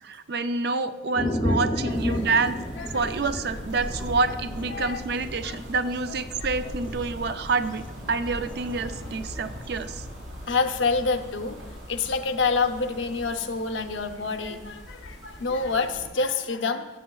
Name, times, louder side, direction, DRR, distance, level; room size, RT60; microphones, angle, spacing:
voice 1, 0.0-2.6 2.9-10.0, right 4 dB, 55° right, 11 dB, 0.4 m, -27 dB
sound 1, 1.2-7.9 8.3-8.4 9.5-10.0, equal, 25° left, 0.6 m, -32 dB
voice 2, 1.8-2.3 2.8-3.1 4.7-5.0 5.4-5.6 10.5-11.6 11.9-16.9, left 4 dB, 75° left, 7 dB, 0.7 m, -27 dB
sound 2, 1.9-16.1, equal, 80° right, 3.1 m, -40 dB
13.5 x 8.2 x 2.3 m, 1.2 s
head